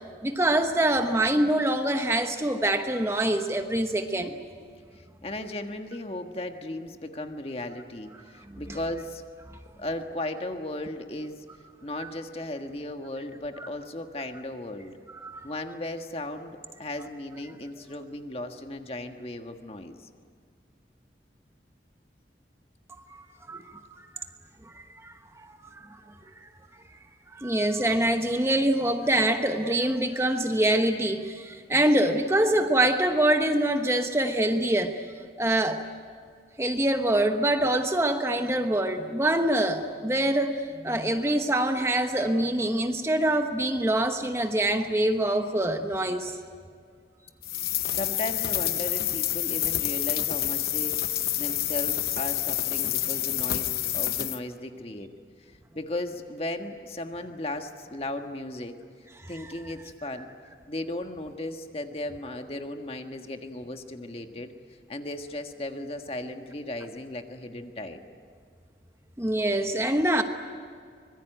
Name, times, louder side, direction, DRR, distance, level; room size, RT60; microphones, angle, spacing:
voice 1, 0.2-4.3 8.5-8.6 12.0-12.1 13.6-13.7 15.2-15.5 23.5-24.2 25.0-25.5 25.9-26.0 26.4-26.5 27.3-35.0 35.4-35.8 36.6-46.4 69.2-70.2, right 1 dB, 15° right, 6 dB, 1.1 m, -25 dB
voice 2, 4.9-9.2 9.8-11.4 11.8-14.9 15.4-20.1 47.9-50.9 51.4-55.1 55.4-58.7 59.3-60.3 60.7-64.5 64.9-68.0, left 1 dB, 35° left, 5 dB, 1.5 m, -36 dB
sound 1, 47.4-54.4, left 13 dB, 55° left, 0.9 m, -28 dB
25.0 x 22.0 x 9.2 m, 2.1 s
head